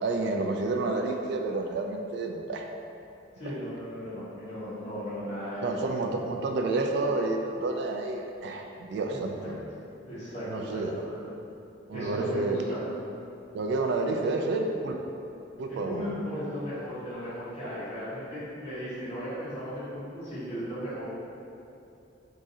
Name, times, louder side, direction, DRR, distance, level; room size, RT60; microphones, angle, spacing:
voice 1, 0.0-2.7 3.4-3.5 5.6-9.6 10.5-10.9 11.9-12.6 13.5-15.0 15.6-16.0, right 3 dB, 65° right, 2 dB, 0.3 m, -29 dB
voice 2, 3.4-5.9 9.1-9.5 10.0-11.2 11.9-12.9 15.7-21.0, equal, 35° left, -12 dB, 1.5 m, -36 dB
3.6 x 2.6 x 4.1 m, 2.7 s
head